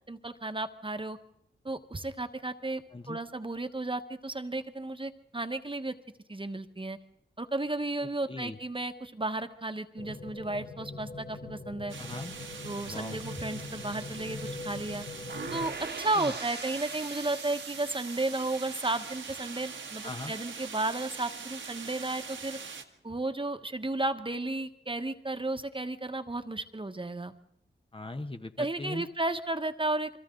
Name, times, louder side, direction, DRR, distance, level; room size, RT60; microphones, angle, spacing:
voice 1, 0.1-1.2 1.6-6.0 6.3-7.0 7.4-12.0 12.6-15.0 15.5-22.6 23.0-27.3 28.6-30.2, right 2 dB, 25° right, 8 dB, 1.3 m, -33 dB
sound 1, 10.0-15.7, left 2 dB, 75° left, 1.9 m, -42 dB
sound 2, 11.9-22.8, right 5 dB, 75° right, 1.6 m, -43 dB
voice 2, 12.0-12.3 12.9-13.2 16.1-16.3 20.0-20.3 27.9-29.1, left 2 dB, 25° left, 8 dB, 1.2 m, -39 dB
sound 3, 15.3-21.2, right 4 dB, 60° right, 1.5 m, -43 dB
29.0 x 23.0 x 3.9 m, 0.74 s
cardioid pair, 50°, 20 cm